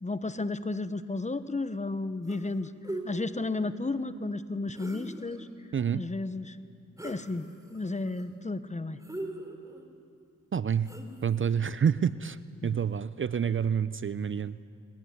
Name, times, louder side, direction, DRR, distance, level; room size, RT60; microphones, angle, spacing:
voice 1, 0.0-2.7 3.0-5.5 5.9-6.6 7.0-9.0 12.5-12.8, left 2 dB, 20° left, 13 dB, 1.0 m, -33 dB
sound 1, 2.3-2.5 2.8-3.1 4.7-5.4 7.0-7.3 7.7-8.2 9.0-9.9 10.9-11.4, right 1 dB, 10° right, 3.1 m, -40 dB
voice 2, 5.7-6.0 10.5-10.9 11.2-12.4 12.6-14.6, right 7 dB, 40° right, 16 dB, 0.5 m, -28 dB
20.0 x 18.0 x 9.6 m, 2.5 s
cardioid pair, 55°, 32 cm